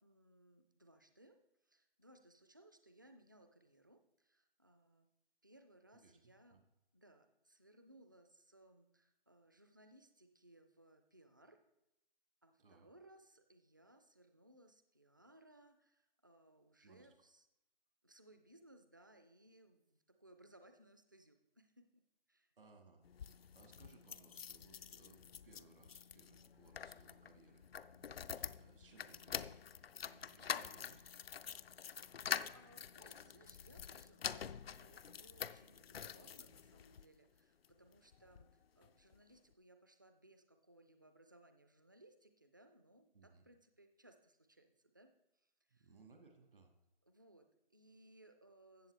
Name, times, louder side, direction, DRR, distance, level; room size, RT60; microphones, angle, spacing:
voice 1, 0.0-1.4 1.7-5.1 5.4-6.7 6.9-11.6 12.4-17.5 18.0-21.9 22.3-22.5 32.0-38.5 38.8-45.1 45.4-45.9 47.0-48.9, right 1 dB, 20° right, 7 dB, 0.4 m, -65 dB
voice 2, 6.0-6.6 12.6-12.9 16.8-17.1 22.6-31.1 43.1-43.4 45.7-46.7, right 3 dB, 65° right, 4 dB, 1.8 m, -65 dB
sound 1, 23.0-37.1 37.6-38.5 38.8-38.9 39.1-39.2, left 8 dB, 90° left, 0.5 m, -47 dB
14.5 x 7.9 x 3.3 m, 0.87 s
hypercardioid pair, 160°, 29 cm